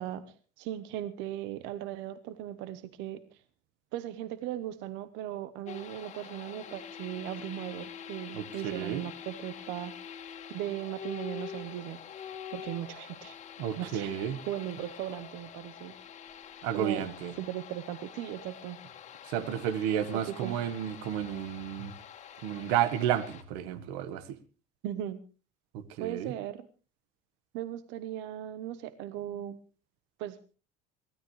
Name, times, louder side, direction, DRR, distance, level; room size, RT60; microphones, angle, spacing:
voice 1, 0.0-3.4 3.9-9.9 10.5-12.0 12.5-13.4 13.7-14.1 14.5-15.9 16.7-17.1 17.4-18.8 20.1-20.6 24.8-25.2 26.0-26.7 27.5-29.6 30.2-30.4, right 12 dB, 60° right, 13 dB, 1.0 m, -38 dB
sound 1, 5.7-23.4, left 8 dB, 35° left, 1.9 m, -46 dB
voice 2, 8.3-9.0 13.6-14.4 16.6-17.3 19.3-21.9 22.4-24.4 25.7-26.3, right 10 dB, 85° right, 13 dB, 1.5 m, -32 dB
23.0 x 16.0 x 3.2 m, 0.34 s
cardioid pair, 175°, 21 cm